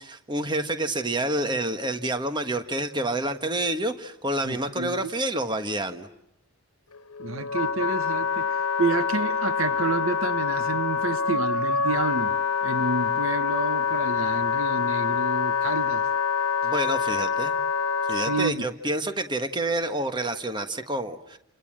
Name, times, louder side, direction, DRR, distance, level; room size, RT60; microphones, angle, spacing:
voice 1, 0.0-6.1 16.6-17.5 18.0-21.4, right 1 dB, 20° right, 1.4 m, -28 dB
voice 2, 4.4-5.1 7.2-12.3 12.6-16.1 18.1-18.7, right 3 dB, 65° right, 1.1 m, -29 dB
Wind instrument woodwind instrument, 6.9-18.5, left 6 dB, 80° left, 1.3 m, -26 dB
30.0 x 26.5 x 7.5 m
head